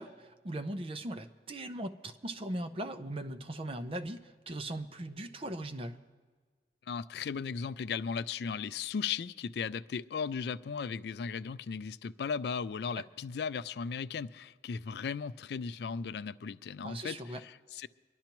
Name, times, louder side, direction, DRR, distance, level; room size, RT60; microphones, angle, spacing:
voice 1, 0.0-6.0 12.9-13.0 16.8-17.4, right 1 dB, 30° right, 0.6 m, -39 dB
voice 2, 6.9-17.9, left 6 dB, 65° left, 0.3 m, -36 dB
24.0 x 11.5 x 3.0 m
head